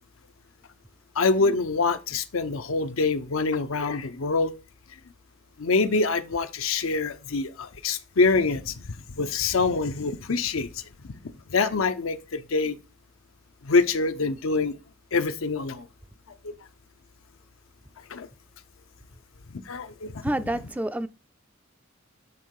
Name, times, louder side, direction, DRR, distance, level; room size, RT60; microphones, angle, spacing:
voice 1, 1.2-4.5 5.6-11.1 11.5-12.8 13.6-14.8 15.1-15.9 16.4-16.5 18.1-18.3 19.5-20.6, left 4 dB, 90° left, 0.7 m, -25 dB
voice 2, 20.2-21.1, right 1 dB, 5° right, 0.3 m, -28 dB
8.7 x 3.7 x 4.7 m
head